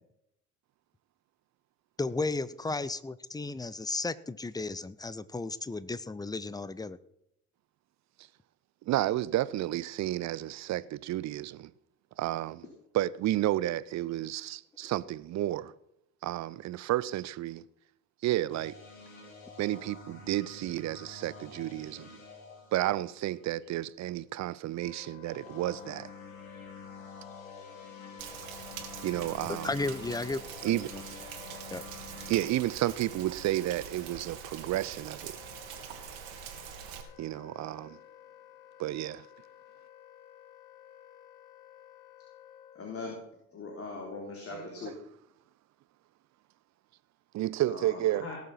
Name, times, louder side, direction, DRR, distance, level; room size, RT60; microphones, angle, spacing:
voice 1, 2.0-7.0 29.5-30.8 31.7-31.8, left 3 dB, 10° left, 0.7 m, -34 dB
voice 2, 8.9-11.7 12.2-12.7 12.9-15.7 16.2-17.6 18.2-18.7 19.6-22.1 22.7-26.1 29.0-29.7 30.6-30.9 32.3-35.3 37.2-38.0 38.8-39.3 44.5-44.9 47.3-48.3, right 14 dB, 45° right, 0.7 m, -31 dB
sound 1, 18.5-23.6 25.2-32.5, left 3 dB, 80° left, 2.7 m, -49 dB
Wind instrument woodwind instrument, 24.8-43.0, left 11 dB, 50° left, 1.8 m, -53 dB
Rain, 28.2-37.0, right 9 dB, 60° right, 2.2 m, -44 dB
voice 3, 42.7-43.2 43.5-44.9 47.7-48.4, left 3 dB, 35° left, 3.4 m, -40 dB
18.0 x 7.4 x 5.8 m
figure-of-eight pair, 55°, 40 cm